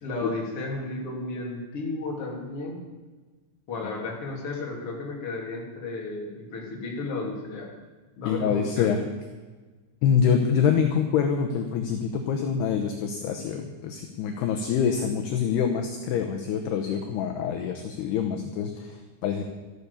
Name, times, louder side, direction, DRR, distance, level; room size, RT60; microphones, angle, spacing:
voice 1, 0.0-2.8 3.7-7.7 8.2-9.0, left 3 dB, 35° left, -1 dB, 3.2 m, -33 dB
voice 2, 8.2-9.0 10.0-19.5, left 7 dB, 75° left, 4 dB, 2.7 m, -25 dB
13.5 x 12.5 x 7.0 m, 1.3 s
omnidirectional pair, 5.5 m